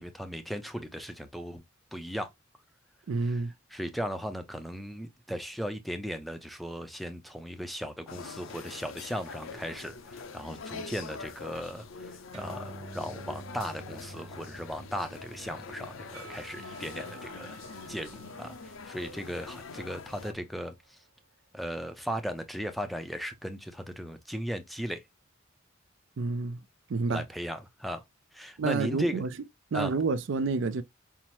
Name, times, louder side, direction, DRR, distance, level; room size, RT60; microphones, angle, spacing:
voice 1, 0.0-1.6 1.9-2.3 3.2-3.4 3.7-17.6 17.9-21.0 21.5-25.0 27.1-28.0 28.3-29.2 29.7-29.9, equal, ahead, 0.4 m, -37 dB
voice 2, 3.1-3.5 26.2-26.6 26.9-27.2 28.6-29.3 29.7-30.8, right 4 dB, 65° right, 0.4 m, -29 dB
sound 1, 8.1-20.3, left 4 dB, 75° left, 0.5 m, -44 dB
sound 2, 12.3-19.2, right 2 dB, 25° right, 1.2 m, -49 dB
Percussion / Church bell, 16.1-21.4, right 6 dB, 85° right, 1.0 m, -54 dB
5.6 x 2.0 x 3.0 m
head